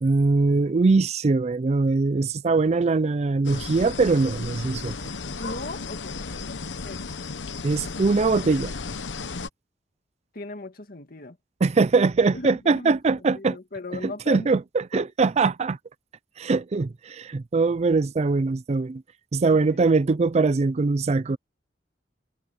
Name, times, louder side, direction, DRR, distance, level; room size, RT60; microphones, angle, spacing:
voice 1, 0.0-5.0 7.6-8.7 11.6-13.6 14.0-15.8 16.4-19.0 19.3-21.4, right 3 dB, 35° right, 0.4 m, -22 dB
sound 1, 3.4-9.5, left 4 dB, 90° left, 1.0 m, -34 dB
voice 2, 5.4-6.6 6.8-7.1 10.3-11.4 12.3-14.5 14.9-15.0 19.5-19.8, left 2 dB, 55° left, 2.3 m, -38 dB
head